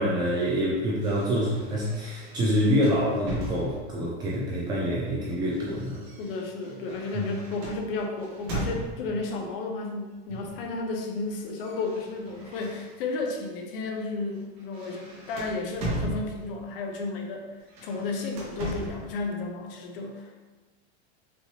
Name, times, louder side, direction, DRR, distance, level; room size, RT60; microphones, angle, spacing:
voice 1, 0.0-6.0 7.1-7.2, equal, 15° right, -5 dB, 0.3 m, -26 dB
sound 1, 1.0-4.1 5.1-9.3 10.3-10.7 11.0-13.3 13.7-13.9 14.3-16.7 17.6-19.1, right 1 dB, 50° right, 1.5 m, -38 dB
voice 2, 6.2-17.5 17.8-20.4, left 3 dB, 60° left, 3 dB, 0.9 m, -33 dB
5.3 x 3.1 x 3.0 m, 1.2 s
supercardioid pair, 160°, 31 cm